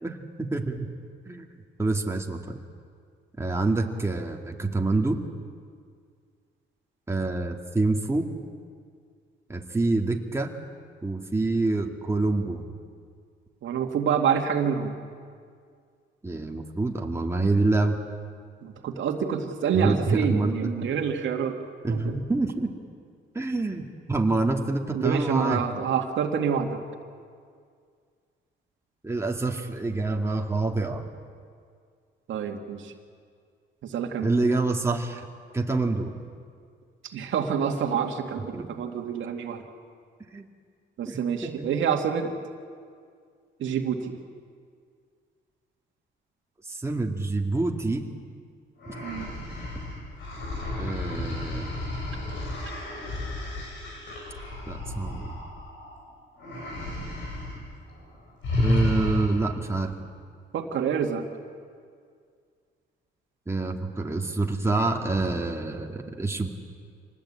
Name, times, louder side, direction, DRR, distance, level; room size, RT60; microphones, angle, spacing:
voice 1, 0.0-0.9 1.3-1.4 1.8-2.6 3.4-5.2 7.1-8.3 9.5-10.5 11.0-12.7 16.2-18.0 19.7-21.1 21.8-22.7 23.3-25.6 29.0-31.0 34.2-35.3 35.5-36.2 38.5-38.7 40.3-40.5 41.1-41.7 46.7-48.1 50.8-51.7 54.7-55.4 58.6-59.9 63.5-66.5, right 2 dB, 15° right, 1 dB, 2.4 m, -27 dB
voice 2, 13.6-14.9 18.6-21.6 21.9-22.2 24.9-26.8 32.3-32.9 33.8-34.3 37.1-39.6 41.0-42.3 43.6-44.2 49.0-49.3 60.5-61.3, right 7 dB, 75° right, 4 dB, 2.2 m, -27 dB
sound 1, 48.8-56.0 56.4-57.6 57.9-58.1 58.4-59.6, left 1 dB, 75° left, 7.7 m, -32 dB
25.5 x 19.5 x 8.8 m, 2.1 s
cardioid pair, 90°, 20 cm